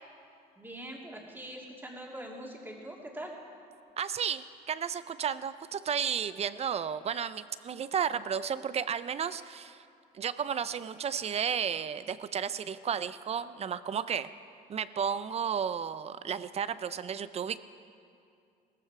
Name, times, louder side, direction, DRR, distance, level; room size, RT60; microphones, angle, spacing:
voice 1, 0.6-3.4, right 1 dB, 10° right, -1 dB, 2.6 m, -43 dB
voice 2, 4.0-9.8 10.1-14.3 14.7-17.6, right 7 dB, 40° right, 14 dB, 0.5 m, -33 dB
17.5 x 14.5 x 4.8 m, 2.4 s
cardioid pair, 110°, 17 cm